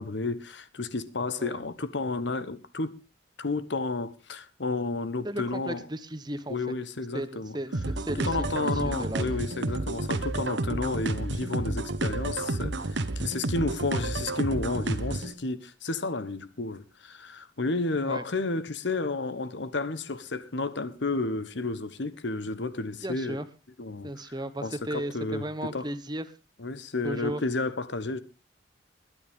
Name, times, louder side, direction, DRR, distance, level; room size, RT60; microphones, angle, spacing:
voice 1, 0.0-3.0 3.4-5.9 6.5-7.6 8.2-23.4 23.8-24.2 24.6-25.9 26.6-28.2, left 3 dB, 65° left, 1.0 m, -31 dB
voice 2, 5.2-6.6 7.1-9.3 13.9-14.1 18.1-18.2 23.0-23.5 24.0-26.2 27.0-27.4, right 1 dB, 20° right, 0.9 m, -35 dB
sound 1, 7.7-15.3, right 2 dB, 65° right, 1.1 m, -30 dB
21.0 x 10.0 x 3.5 m
head